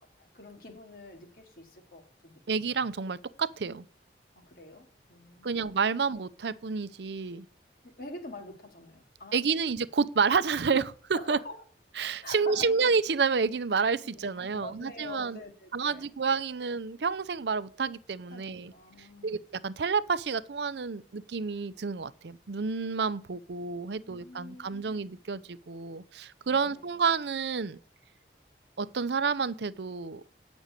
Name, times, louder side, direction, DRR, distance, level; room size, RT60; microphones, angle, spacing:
voice 1, 0.2-2.6 4.4-5.8 8.0-9.4 11.1-11.6 12.2-12.7 14.0-16.1 18.3-19.4 24.0-25.0 26.5-26.9, left 2 dB, 55° left, 2.5 m, -46 dB
voice 2, 2.5-3.8 5.4-7.5 9.3-11.4 12.0-15.4 15.7-18.7 19.2-27.8 28.8-30.2, right 5 dB, 75° right, 0.6 m, -29 dB
9.0 x 6.1 x 8.1 m
head